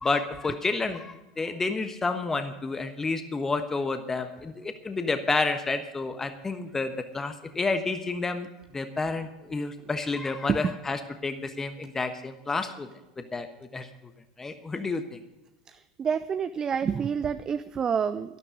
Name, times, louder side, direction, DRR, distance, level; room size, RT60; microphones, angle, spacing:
voice 1, 0.0-8.5 8.7-12.9 13.2-13.5 13.7-13.9 14.4-15.2, left 3 dB, 15° left, 8 dB, 1.2 m, -30 dB
voice 2, 16.0-18.4, right 7 dB, 25° right, 12 dB, 0.5 m, -28 dB
12.5 x 12.5 x 5.2 m, 0.98 s
figure-of-eight pair, 80°, 3 cm